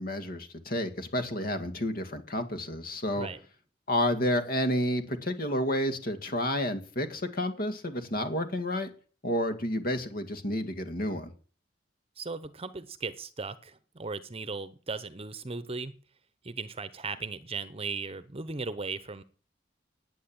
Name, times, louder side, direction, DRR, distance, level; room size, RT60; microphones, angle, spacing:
voice 1, 0.0-3.3 3.9-8.9 9.2-11.3, left 1 dB, 55° left, 8 dB, 2.0 m, -30 dB
voice 2, 12.2-15.9 16.4-19.2, right 4 dB, 35° right, 14 dB, 0.9 m, -37 dB
10.0 x 9.1 x 8.9 m, 0.40 s
head